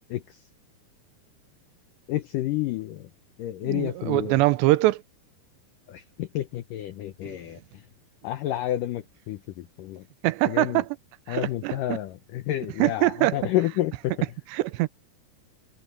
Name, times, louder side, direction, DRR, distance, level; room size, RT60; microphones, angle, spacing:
voice 1, 2.1-3.1 3.4-4.4 5.9-7.6 8.2-10.0 10.5-10.8 11.3-14.2, left 14 dB, 85° left, 1.9 m, -30 dB
voice 2, 3.6-5.0 7.3-7.4 10.2-11.0 11.3-12.0 12.8-13.4 14.5-14.9, right 19 dB, 90° right, 2.9 m, -23 dB
omnidirectional pair, 4.9 m